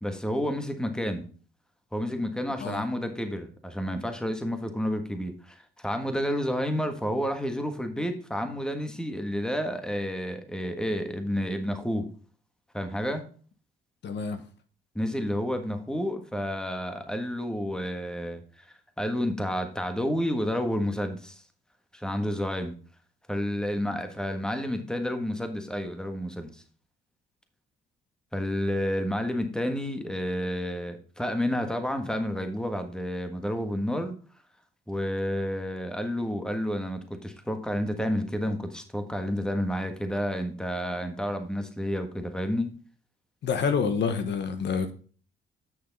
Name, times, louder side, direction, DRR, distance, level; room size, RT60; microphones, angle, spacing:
voice 1, 0.0-1.3 1.9-12.1 12.7-13.2 14.9-21.4 21.9-22.8 23.3-26.6 28.3-34.1 34.9-42.7, equal, 5° left, 1.4 m, -30 dB
voice 2, 14.0-14.4 43.4-44.9, left 6 dB, 60° left, 1.1 m, -27 dB
8.7 x 6.5 x 4.0 m
cardioid pair, 90°, 20 cm